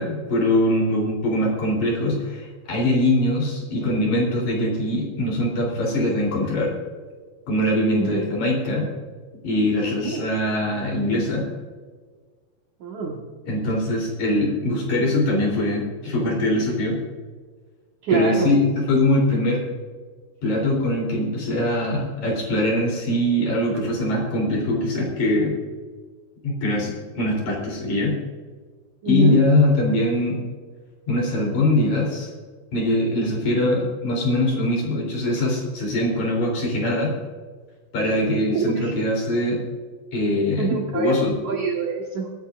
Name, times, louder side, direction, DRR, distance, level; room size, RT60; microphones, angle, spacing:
voice 1, 0.0-6.7 7.5-8.9 9.4-11.5 13.5-17.0 18.1-19.6 20.4-25.6 26.4-28.1 29.1-30.4 31.1-32.3 32.7-37.1 37.9-39.6 40.1-41.3, left 1 dB, 50° left, -1 dB, 4.7 m, -22 dB
voice 2, 7.9-8.3 10.0-10.2 12.8-13.2 18.0-18.5 29.0-29.4 38.3-38.9 40.6-42.3, right 5 dB, 60° right, 0 dB, 2.5 m, -25 dB
22.5 x 11.0 x 2.5 m, 1.5 s
omnidirectional pair, 4.5 m